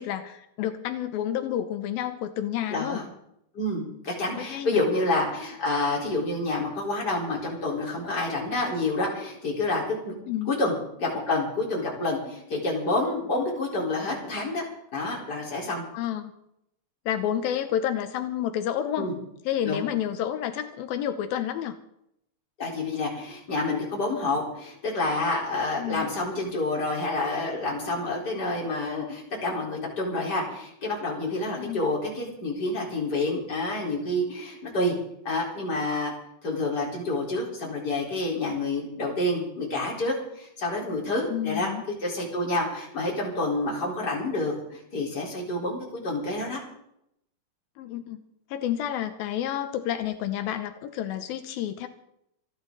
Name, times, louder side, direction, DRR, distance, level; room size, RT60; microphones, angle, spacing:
voice 1, 0.0-3.0 4.4-4.8 10.3-10.5 15.9-16.3 17.1-19.1 19.5-21.8 25.8-26.1 31.6-31.8 41.3-41.8 47.8-48.2 48.5-51.9, left 10 dB, 85° left, 8 dB, 2.7 m, -30 dB
voice 2, 2.7-3.0 3.5-10.1 10.5-14.6 14.9-15.8 19.0-19.1 19.6-19.8 22.6-34.9 35.2-36.1 36.4-41.7 42.0-45.8 46.0-46.6, left 2 dB, 25° left, -3 dB, 4.5 m, -28 dB
27.5 x 11.0 x 4.0 m, 0.76 s
omnidirectional pair, 4.2 m